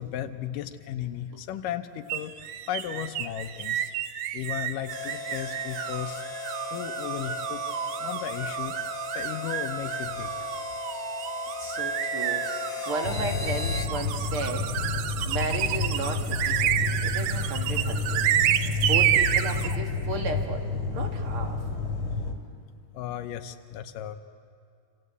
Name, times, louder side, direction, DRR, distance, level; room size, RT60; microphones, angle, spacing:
voice 1, 0.0-2.3 2.7-3.9 4.3-6.2 6.7-7.6 8.0-8.8 9.1-10.5 22.9-24.2, left 11 dB, 85° left, 8 dB, 2.5 m, -35 dB
sound 1, 2.1-19.8, right 11 dB, 75° right, 1.6 m, -30 dB
Harmonica, 4.8-13.9, left 4 dB, 25° left, 1.7 m, -37 dB
voice 2, 11.6-12.4 12.9-14.7 15.2-18.2 18.8-20.6 20.9-21.6, right 3 dB, 45° right, 3 dB, 2.5 m, -34 dB
sound 2, 13.0-22.3, left 4 dB, 45° left, 3.3 m, -30 dB
27.5 x 26.5 x 8.2 m, 2.4 s
omnidirectional pair, 3.8 m